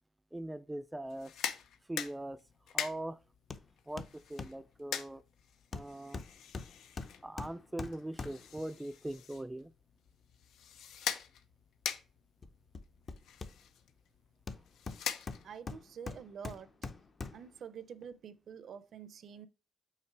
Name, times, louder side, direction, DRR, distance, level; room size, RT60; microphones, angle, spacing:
voice 1, 0.3-1.3 1.9-2.4 2.7-3.2 3.9-5.2 5.7-6.2 7.2-9.7, right 1 dB, 10° right, 0.3 m, -41 dB
sound 1, 1.1-15.7, left 8 dB, 85° left, 0.6 m, -44 dB
Hammer, 3.5-3.7 4.0-4.6 5.7-8.6 12.4-13.9 14.5-17.6 18.0-18.1, left 4 dB, 35° left, 0.7 m, -44 dB
voice 2, 15.4-16.7 17.3-19.5, right 7 dB, 65° right, 0.6 m, -47 dB
5.8 x 3.7 x 4.5 m
cardioid pair, 100°, 0 cm